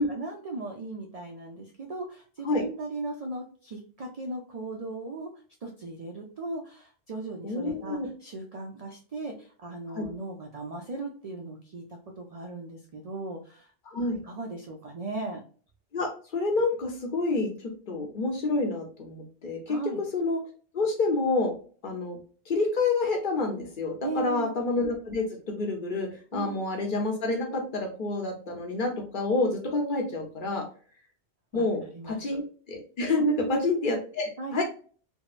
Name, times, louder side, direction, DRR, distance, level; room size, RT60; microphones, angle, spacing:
voice 1, 0.0-5.3 5.6-13.7 14.2-15.4 19.7-20.0 24.0-24.5 26.3-26.6 31.5-31.7 31.9-32.4 33.2-33.6 34.4-34.6, right 3 dB, 60° right, 1 dB, 0.4 m, -37 dB
voice 2, 7.4-8.1 9.9-10.1 13.9-14.2 15.9-19.8 20.1-20.4 20.7-21.5 21.8-22.2 22.5-30.6 31.5-32.4 32.7-34.6, left 3 dB, 50° left, 2 dB, 0.8 m, -28 dB
3.6 x 2.0 x 2.3 m, 0.40 s
omnidirectional pair, 1.2 m